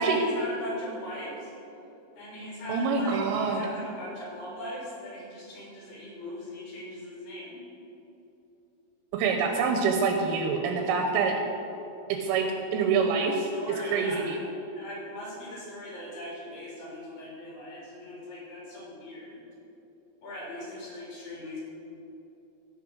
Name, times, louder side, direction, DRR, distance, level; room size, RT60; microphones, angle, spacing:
voice 1, 0.0-1.5 2.2-7.6 13.0-14.3 14.7-19.4 20.2-21.6, left 1 dB, 45° left, -6 dB, 4.4 m, -40 dB
voice 2, 2.7-3.6 9.1-11.4 12.1-12.5 12.7-13.3 13.9-14.4, right 5 dB, 80° right, 3 dB, 3.1 m, -25 dB
16.0 x 5.5 x 6.2 m, 2.9 s
omnidirectional pair, 5.9 m